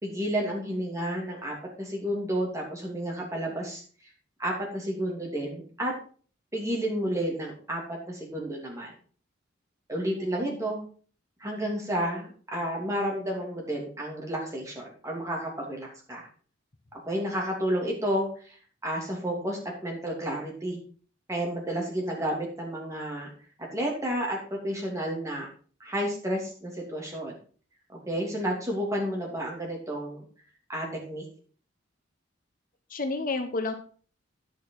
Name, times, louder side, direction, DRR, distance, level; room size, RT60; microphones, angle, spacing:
voice 1, 0.0-3.8 4.4-5.9 6.5-8.9 9.9-10.8 11.4-16.3 16.9-18.5 18.8-20.8 21.3-23.3 23.6-25.5 25.8-27.4 27.9-30.2 30.7-31.3, equal, 15° right, -2 dB, 2.8 m, -31 dB
voice 2, 10.2-10.7 32.9-33.7, left 3 dB, 45° left, 6 dB, 0.9 m, -32 dB
10.5 x 6.6 x 4.6 m, 0.42 s
head